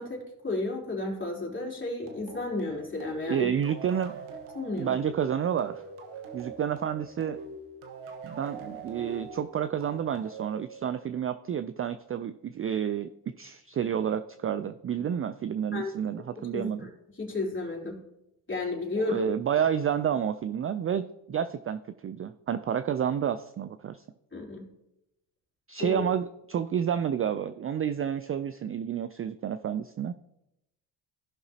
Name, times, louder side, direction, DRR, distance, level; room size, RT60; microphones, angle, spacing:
voice 1, 0.0-3.5 4.5-4.9 15.7-15.9 16.5-16.9 17.2-18.0 18.5-19.2 24.3-24.6 25.8-26.0, left 3 dB, 25° left, -2 dB, 3.6 m, -32 dB
sound 1, 2.1-11.3, right 5 dB, 85° right, 1.4 m, -44 dB
voice 2, 3.3-4.1 4.8-5.8 6.3-7.4 8.2-13.1 13.4-16.9 19.0-24.0 25.7-30.1, right 8 dB, 30° right, 12 dB, 0.3 m, -30 dB
15.5 x 5.8 x 2.8 m, 0.88 s
supercardioid pair, 70°, 49 cm